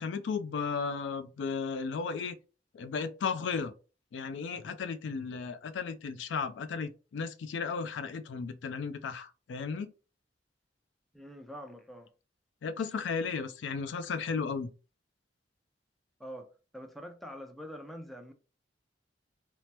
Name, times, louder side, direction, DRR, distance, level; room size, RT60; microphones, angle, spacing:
voice 1, 0.0-2.4 2.7-3.7 4.1-9.9 12.6-14.7, left 5 dB, 90° left, 0.4 m, -34 dB
voice 2, 11.1-12.1 16.2-18.3, equal, ahead, 0.3 m, -45 dB
3.2 x 2.0 x 2.8 m
head